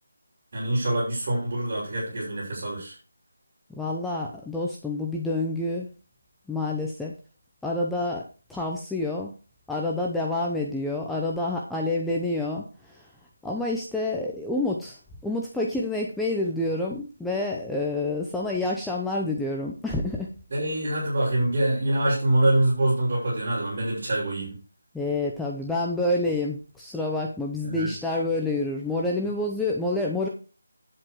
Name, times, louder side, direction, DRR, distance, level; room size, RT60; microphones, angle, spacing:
voice 1, 0.5-2.9 20.5-24.6 27.6-27.9, right 1 dB, 35° right, -8 dB, 5.9 m, -25 dB
voice 2, 3.7-5.9 6.5-7.1 7.6-8.2 8.5-9.3 9.7-13.1 13.4-20.3 24.9-30.3, left 2 dB, ahead, -2 dB, 0.7 m, -28 dB
9.9 x 7.7 x 4.7 m, 0.35 s
figure-of-eight pair, 175°, 0 cm